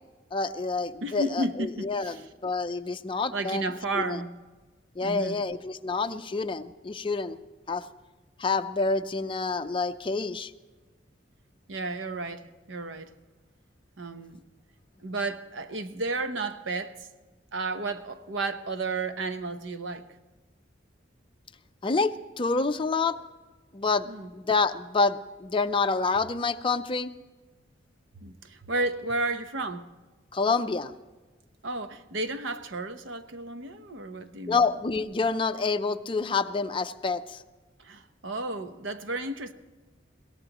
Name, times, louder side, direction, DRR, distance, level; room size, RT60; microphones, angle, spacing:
voice 1, 0.3-4.2 5.0-7.4 7.7-7.8 8.4-10.5 21.8-23.2 23.7-24.1 24.3-27.1 30.3-30.9 34.5-37.4, left 4 dB, 30° left, 0.5 m, -28 dB
voice 2, 1.0-2.2 3.3-4.3 5.0-5.5 11.7-13.1 14.0-14.4 15.0-17.0 17.5-20.1 24.1-24.3 28.1-29.8 31.6-34.6 37.8-39.5, right 2 dB, 90° right, 0.9 m, -32 dB
22.0 x 17.0 x 3.0 m
head